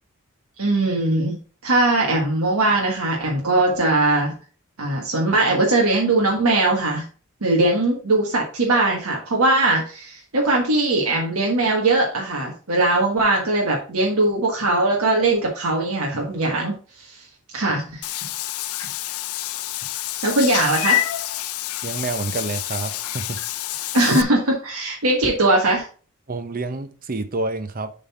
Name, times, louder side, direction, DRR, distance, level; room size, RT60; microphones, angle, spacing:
voice 1, 0.6-4.3 4.8-7.0 7.4-17.2 17.5-18.1 20.2-21.0 23.9-25.9, right 2 dB, 80° right, 1.5 m, -20 dB
Meow / Water / Bathtub (filling or washing), 18.0-24.2, left 13 dB, 80° left, 0.5 m, -27 dB
voice 2, 21.8-23.4 23.7-23.9 26.3-27.9, right 3 dB, 40° right, 0.7 m, -28 dB
7.0 x 4.1 x 4.2 m
head